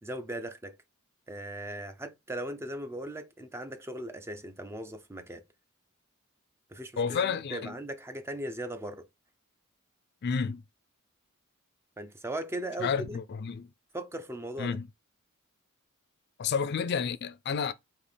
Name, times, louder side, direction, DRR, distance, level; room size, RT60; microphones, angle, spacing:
voice 1, 0.0-0.8 1.3-5.4 6.7-9.1 12.0-13.2 13.9-14.8, right 1 dB, 10° right, 0.4 m, -38 dB
voice 2, 7.0-7.7 10.2-10.6 12.8-13.7 14.6-14.8 16.4-17.7, left 6 dB, 50° left, 0.4 m, -30 dB
4.2 x 2.8 x 3.4 m
head